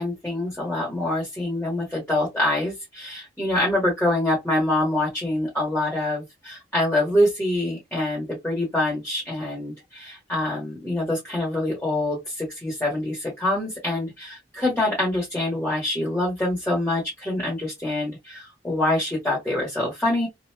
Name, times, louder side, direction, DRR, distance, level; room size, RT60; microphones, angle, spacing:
voice 1, 0.0-20.3, left 1 dB, 5° left, 1.2 m, -25 dB
2.9 x 2.4 x 2.2 m
head